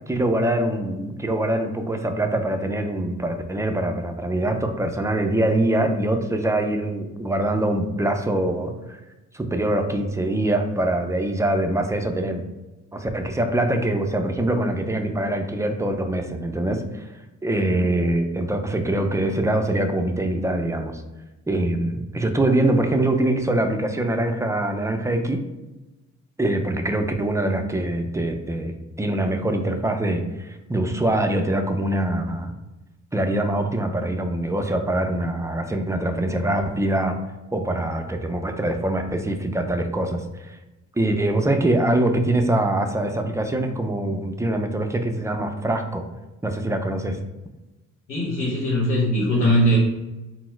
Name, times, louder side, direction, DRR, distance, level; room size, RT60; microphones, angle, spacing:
voice 1, 0.1-9.0 9.3-12.5 12.9-17.1 17.4-21.0 21.5-25.4 26.4-32.5 33.1-37.2 37.5-40.6 41.0-46.1 46.4-47.2, right 1 dB, 10° right, 5 dB, 0.4 m, -24 dB
voice 2, 48.1-49.8, equal, 80° left, -6 dB, 1.2 m, -20 dB
4.2 x 2.0 x 4.4 m, 1.1 s
cardioid pair, 90°, 30 cm